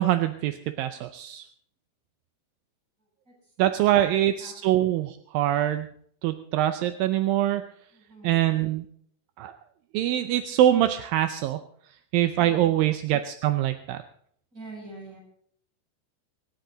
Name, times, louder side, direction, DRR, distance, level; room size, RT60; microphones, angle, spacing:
voice 1, 0.0-1.4 3.6-5.9 6.2-7.6 8.2-8.9 9.4-9.6 9.9-11.6 12.1-14.0, right 13 dB, 80° right, 9 dB, 2.4 m, -24 dB
voice 2, 3.3-4.5 7.9-8.4 12.4-12.8 14.5-15.2, right 2 dB, 20° right, -4 dB, 8.5 m, -46 dB
25.5 x 10.0 x 3.9 m, 0.63 s
omnidirectional pair, 4.1 m